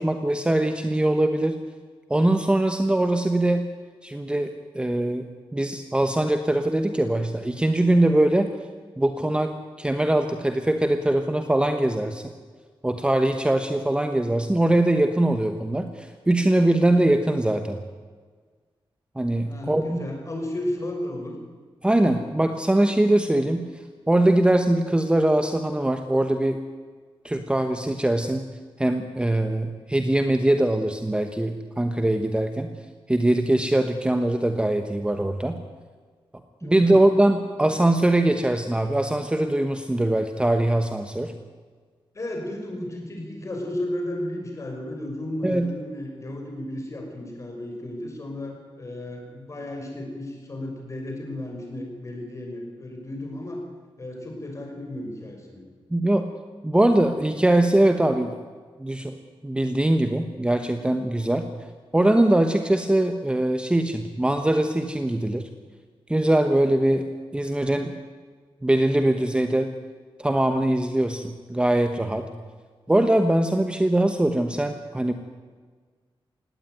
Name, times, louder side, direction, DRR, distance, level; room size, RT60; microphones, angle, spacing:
voice 1, 0.0-1.6 2.1-3.7 4.0-5.2 5.5-8.5 9.0-12.2 12.8-17.8 19.2-20.0 21.8-23.7 24.1-26.6 27.2-28.4 28.8-32.7 33.1-35.6 36.6-41.3 45.4-45.7 55.9-56.3 56.6-58.4 58.8-59.1 59.4-61.5 61.9-65.4 66.1-67.0 67.3-67.9 68.6-69.7 70.2-72.3 72.9-75.1, right 1 dB, 10° right, 7 dB, 1.1 m, -22 dB
voice 2, 19.4-21.4 36.6-37.0 42.1-53.6 54.0-55.6, left 1 dB, 35° left, 2 dB, 5.8 m, -34 dB
18.5 x 17.5 x 9.2 m, 1.5 s
wide cardioid pair, 145°, 9 cm